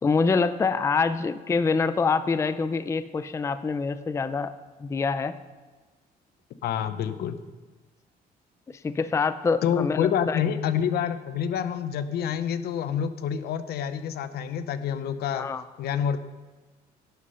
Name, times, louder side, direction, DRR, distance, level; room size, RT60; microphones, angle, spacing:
voice 1, 0.0-4.5 4.8-5.3 8.7-10.4 15.3-15.6, left 4 dB, 15° left, 13 dB, 0.4 m, -25 dB
voice 2, 6.6-7.4 9.6-15.5 15.8-16.2, left 8 dB, 70° left, 12 dB, 0.8 m, -27 dB
11.5 x 8.4 x 5.5 m, 1.3 s
cardioid pair, 110°, 17 cm